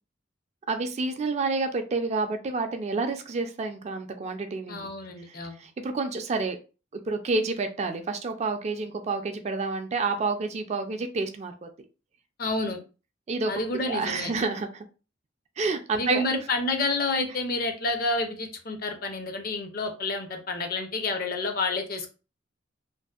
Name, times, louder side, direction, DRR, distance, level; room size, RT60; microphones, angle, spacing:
voice 1, 0.7-4.9 5.3-6.6 7.1-11.7 13.3-13.5 13.9-14.9 15.6-16.2, right 3 dB, 35° right, 6 dB, 0.3 m, -29 dB
voice 2, 4.7-5.6 12.4-12.8 13.5-14.3 16.0-22.1, left 3 dB, 50° left, 6 dB, 0.5 m, -29 dB
2.6 x 2.4 x 2.3 m, 0.34 s
head